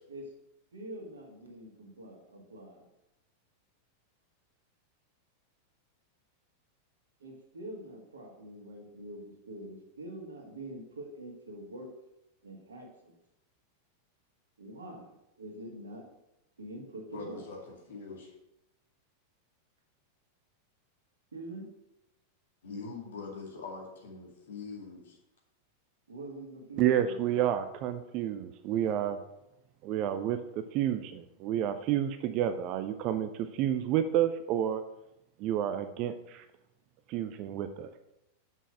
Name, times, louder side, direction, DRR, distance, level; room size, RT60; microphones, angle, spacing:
voice 1, 0.7-2.9 7.2-11.9 12.4-13.1 14.6-16.1 16.6-17.4 21.3-21.6 26.1-27.2, right 1 dB, 70° right, 0 dB, 1.8 m, -45 dB
voice 2, 17.1-18.3 22.6-25.2, left 4 dB, 60° left, 0 dB, 2.0 m, -43 dB
voice 3, 26.8-29.2 29.8-30.4 30.7-34.8 35.4-36.5 37.1-38.0, right 10 dB, 40° right, 9 dB, 0.5 m, -30 dB
6.2 x 5.5 x 6.1 m, 0.87 s
figure-of-eight pair, 90°, 0 cm